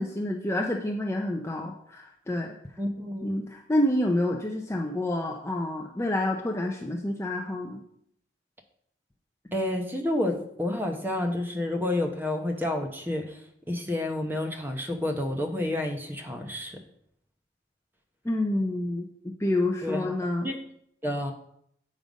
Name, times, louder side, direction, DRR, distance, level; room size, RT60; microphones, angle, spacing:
voice 1, 0.0-2.5 3.2-7.8 18.2-20.5, left 1 dB, 15° left, 2 dB, 0.5 m, -28 dB
voice 2, 2.8-3.4 9.5-13.4 13.7-16.8 19.8-20.2 20.4-20.6 21.0-21.3, left 1 dB, 10° right, 3 dB, 0.8 m, -29 dB
7.7 x 5.3 x 5.1 m, 0.71 s
head